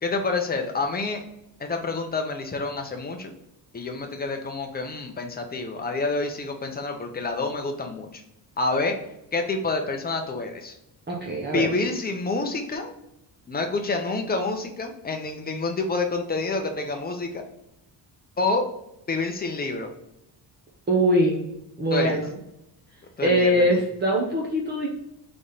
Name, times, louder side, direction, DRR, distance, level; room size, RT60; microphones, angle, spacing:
voice 1, 0.0-1.2 1.6-3.3 3.7-8.2 8.6-9.0 9.3-10.7 11.5-12.9 13.5-17.4 18.4-18.7 19.1-19.9 21.9-22.2 23.2-23.8, left 3 dB, 20° left, 4 dB, 0.6 m, -28 dB
voice 2, 11.1-11.7 20.9-21.4 21.8-22.3 23.2-24.9, equal, 25° right, -2 dB, 0.8 m, -22 dB
4.1 x 3.3 x 3.9 m, 0.83 s
cardioid pair, 160°, 43 cm